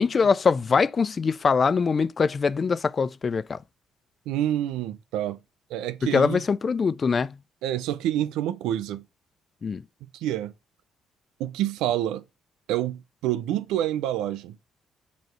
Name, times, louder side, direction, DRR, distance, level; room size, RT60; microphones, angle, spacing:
voice 1, 0.0-3.6 6.1-7.4 9.6-9.8, left 5 dB, 40° left, 0.3 m, -23 dB
voice 2, 4.3-5.4 5.7-6.4 7.6-9.0 10.0-10.5 11.4-12.2 12.7-14.6, right 12 dB, 85° right, 0.5 m, -27 dB
7.0 x 3.0 x 4.5 m
supercardioid pair, 80°, 0 cm